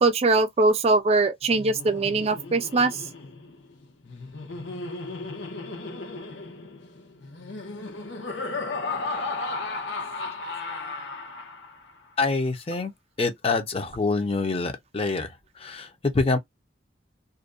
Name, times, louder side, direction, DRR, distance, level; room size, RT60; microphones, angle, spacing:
voice 1, 0.0-2.9, right 3 dB, 35° right, 0.4 m, -21 dB
Laughter, 1.4-11.9, left 3 dB, 80° left, 0.8 m, -35 dB
voice 2, 12.2-12.9 13.2-15.3 15.6-16.4, left 3 dB, 30° left, 0.6 m, -26 dB
2.5 x 2.1 x 2.4 m
head